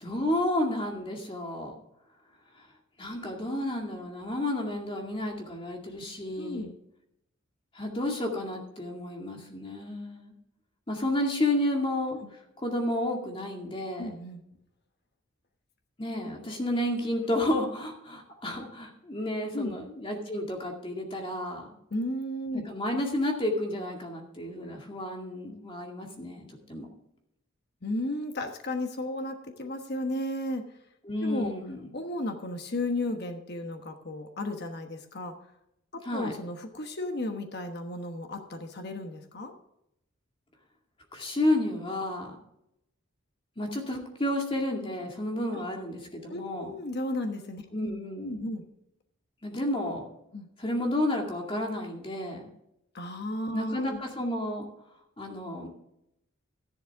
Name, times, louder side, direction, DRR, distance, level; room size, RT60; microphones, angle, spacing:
voice 1, 0.0-1.7 2.6-2.7 3.0-6.7 7.7-10.3 10.9-12.2 12.6-14.1 16.0-21.7 22.5-26.9 31.0-31.9 36.0-36.3 41.1-42.4 43.6-46.7 47.7-48.5 49.4-50.0 50.6-52.5 53.5-54.7 55.2-55.7, left 1 dB, 25° left, 1 dB, 2.2 m, -31 dB
voice 2, 6.4-6.8 14.0-14.4 19.5-19.8 21.9-22.6 27.8-30.6 31.2-31.5 31.9-35.3 35.9-39.5 45.5-45.6 46.3-47.9 48.2-48.6 50.3-50.5 52.9-54.0, left 1 dB, 50° left, 5 dB, 1.2 m, -34 dB
12.5 x 11.0 x 3.6 m, 0.80 s
head